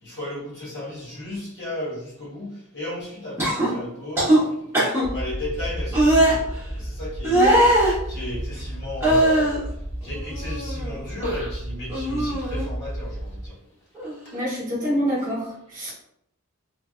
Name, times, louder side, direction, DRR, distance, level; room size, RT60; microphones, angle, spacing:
voice 1, 0.0-6.5 6.7-7.5 8.1-9.6 10.0-13.5, left 1 dB, 50° left, -5 dB, 1.1 m, -34 dB
sound 1, 3.4-3.7 4.1-4.4 4.7-5.0 5.9-6.3 7.2-7.9 9.0-9.6 10.1-10.9 11.2-11.5 11.9-12.7 13.9-14.1, right 1 dB, 10° right, 1.0 m, -20 dB
sound 2, 5.0-13.5, right 1 dB, 80° left, 1.0 m, -33 dB
voice 2, 14.3-15.9, equal, 35° right, -7 dB, 1.2 m, -26 dB
3.2 x 2.5 x 2.3 m, 0.76 s
head